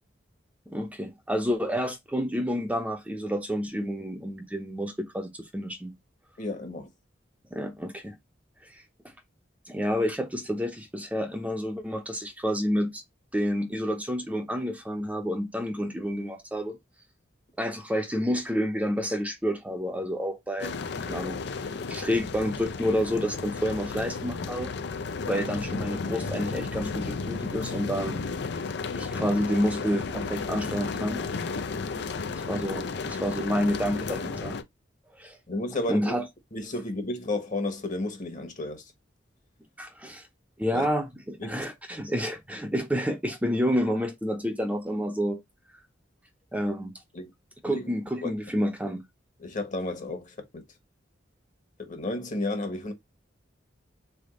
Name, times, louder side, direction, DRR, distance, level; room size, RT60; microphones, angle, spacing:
voice 1, 0.7-5.9 7.5-8.1 8.7-8.8 9.7-13.0 13.3-16.8 17.6-20.7 21.0-21.4 21.9-24.7 25.3-28.2 29.0-31.2 32.5-34.6 35.1-35.4 35.9-36.2 39.8-40.2 40.6-45.4 46.5-46.9 47.6-49.0, equal, 10° right, 0.7 m, -29 dB
voice 2, 6.4-6.9 35.5-36.1 36.5-38.8 40.7-40.9 41.4-41.5 47.1-47.3 47.7-47.9 48.2-48.3 49.4-50.6 51.8-52.9, left 2 dB, 45° left, 1.3 m, -32 dB
sound 1, 20.6-34.6, left 4 dB, 65° left, 0.5 m, -33 dB
3.7 x 3.5 x 3.7 m
head